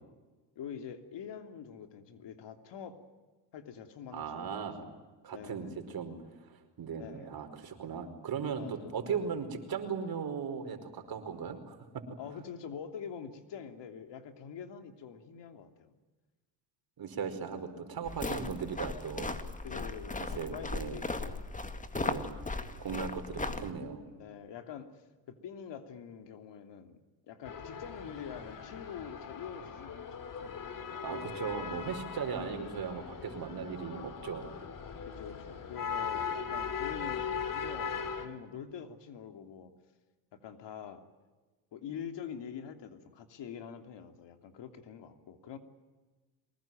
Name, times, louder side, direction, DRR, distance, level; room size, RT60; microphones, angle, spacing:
voice 1, 0.5-3.0 3.5-5.0 5.3-5.7 7.0-7.4 8.5-9.4 12.2-15.9 19.6-21.4 23.0-23.3 24.1-25.0 25.4-27.0 27.3-30.6 35.1-39.7 40.3-41.0 41.7-45.6, left 7 dB, 60° left, 7 dB, 3.1 m, -45 dB
voice 2, 4.1-4.8 5.2-12.0 17.0-19.3 20.4-21.0 21.9-22.3 22.8-24.0 31.0-34.5, right 6 dB, 45° right, 7 dB, 5.0 m, -38 dB
sound 1, 18.1-23.7, left 3 dB, 15° left, 2.1 m, -37 dB
sound 2, 27.4-38.3, left 6 dB, 40° left, 3.3 m, -39 dB
24.0 x 20.5 x 9.2 m, 1.2 s
supercardioid pair, 90°, 48 cm